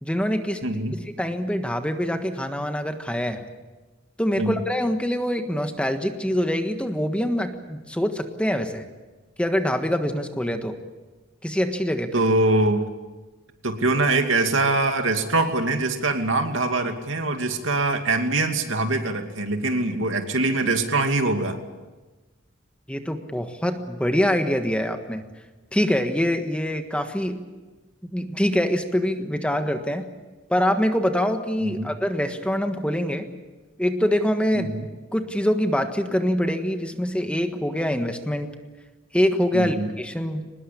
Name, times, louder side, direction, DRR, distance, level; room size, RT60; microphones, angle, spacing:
voice 1, 0.0-0.6 1.2-3.5 4.2-8.8 9.4-10.8 11.4-12.1 22.9-25.2 25.7-27.4 28.1-30.1 30.5-33.3 33.8-34.7 35.1-38.5 39.1-40.5, equal, 5° left, 6 dB, 1.5 m, -24 dB
voice 2, 0.6-1.0 4.4-4.6 12.1-12.9 13.6-21.6 31.6-31.9 34.6-34.9 39.5-39.9, right 2 dB, 80° right, 5 dB, 2.6 m, -23 dB
24.0 x 20.0 x 8.6 m, 1.2 s
head